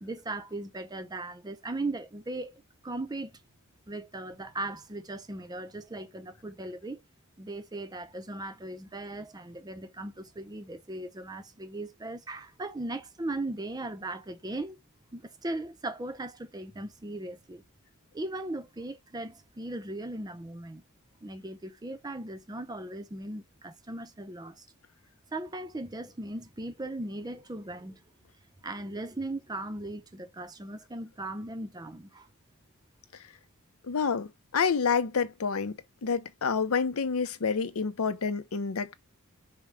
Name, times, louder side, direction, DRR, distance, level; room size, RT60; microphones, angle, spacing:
voice 1, 0.0-3.3 3.9-7.0 7.4-14.8 15.1-17.6 18.1-20.8 21.2-24.7 25.3-28.0 28.6-32.3, right 2 dB, 20° right, 0.6 m, -38 dB
voice 2, 33.8-38.9, left 5 dB, 75° left, 0.6 m, -28 dB
5.3 x 2.2 x 4.6 m
head